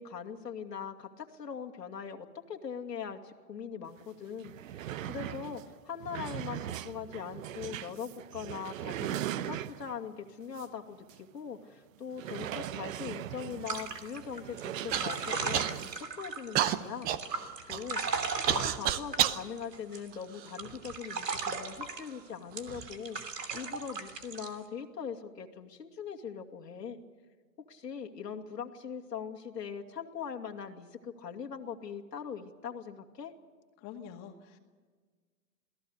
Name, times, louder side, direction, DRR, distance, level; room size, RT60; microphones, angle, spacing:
voice 1, 0.0-17.1 17.7-18.0 18.3-27.0 27.7-33.3, left 7 dB, 90° left, 3 dB, 2.5 m, -41 dB
sound 1, 4.0-4.1 4.3-10.1 10.5-10.7 11.1-11.2 12.1-16.0, right 12 dB, 55° right, 1.0 m, -39 dB
sound 2, 13.7-16.6 17.0-20.1 20.4-22.1 22.6-24.5, right 4 dB, 90° right, 3.1 m, -36 dB
Human voice / Cough, 14.9-15.1 15.5-16.0 16.6-19.4 20.1-21.0 21.7-21.8 22.5-22.9, right 11 dB, 20° right, 0.7 m, -31 dB
voice 2, 33.8-34.6, left 8 dB, 30° left, 3 dB, 2.0 m, -46 dB
27.5 x 18.0 x 6.6 m, 1.5 s
hypercardioid pair, 130°, 48 cm